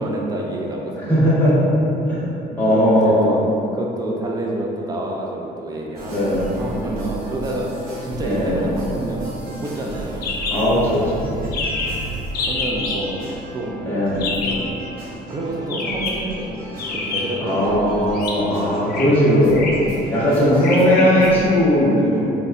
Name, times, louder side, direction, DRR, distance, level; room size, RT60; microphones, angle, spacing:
voice 1, 0.0-1.2 2.5-7.7 8.0-10.3 12.4-13.3 13.5-13.8 14.4-14.7 15.3-17.9 20.3-20.7, right 1 dB, 20° right, -1 dB, 0.4 m, -28 dB
voice 2, 1.1-1.7 2.1-3.4 6.1-6.4 8.2-8.7 10.5-11.3 13.8-14.2 17.4-19.7 20.1-22.3, equal, 10° left, -10 dB, 1.1 m, -18 dB
sound 1, 5.9-21.5, right 1 dB, 70° right, 1.0 m, -34 dB
sound 2, 10.2-10.6 10.9-11.0 11.2-11.3 11.5-12.0 12.3-13.0 14.2-14.7 15.7-16.2 16.8-17.5 18.1-18.3 18.9-19.1 19.5-19.9 20.6-21.3, left 4 dB, 65° left, 0.5 m, -26 dB
4.0 x 2.2 x 2.4 m, 2.8 s
cardioid pair, 110°, 17 cm